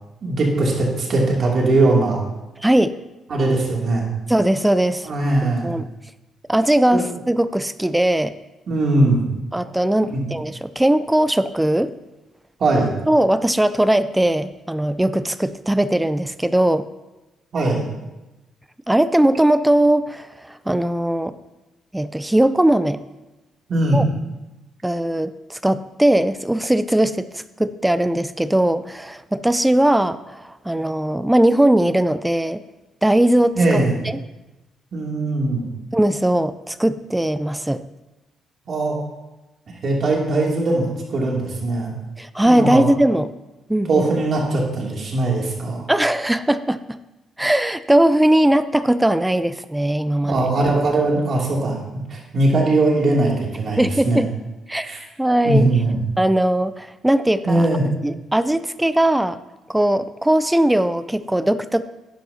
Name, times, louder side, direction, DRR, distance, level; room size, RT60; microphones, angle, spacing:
voice 1, 0.2-2.2 3.3-4.1 5.0-5.7 6.9-7.0 8.7-9.2 10.1-10.2 12.6-12.9 17.5-17.9 23.7-24.0 33.5-33.9 34.9-35.7 38.7-39.0 39.8-41.9 42.4-42.8 43.9-45.9 50.2-51.8 52.1-54.2 54.8-55.0 55.4-56.0 57.4-57.8, right 2 dB, 50° right, -2 dB, 2.6 m, -20 dB
voice 2, 2.6-2.9 4.3-5.1 5.6-5.9 6.5-8.3 9.5-11.9 13.1-16.9 18.9-21.3 21.9-23.0 23.9-24.0 24.8-32.6 33.0-34.2 35.9-37.8 42.2-43.3 43.7-44.0 45.9-47.0 47.4-50.4 53.8-54.3 54.7-55.7 56.2-57.7 58.0-59.4 59.7-61.9, right 1 dB, 10° right, 13 dB, 0.4 m, -19 dB
10.5 x 10.5 x 2.8 m, 1.0 s
cardioid pair, 90°, 0 cm